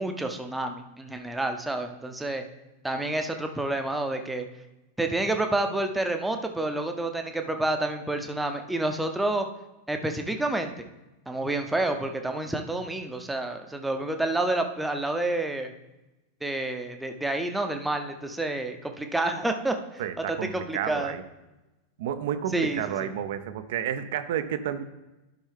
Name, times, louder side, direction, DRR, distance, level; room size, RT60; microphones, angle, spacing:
voice 1, 0.0-2.4 2.8-4.5 5.0-9.5 9.9-10.7 11.3-15.7 16.4-20.0 20.3-21.1 22.5-22.8, right 2 dB, 5° right, 5 dB, 0.7 m, -29 dB
voice 2, 20.0-21.2 22.0-24.8, right 9 dB, 55° right, 10 dB, 0.6 m, -31 dB
12.0 x 5.3 x 3.4 m, 1.0 s
figure-of-eight pair, 90°, 0 cm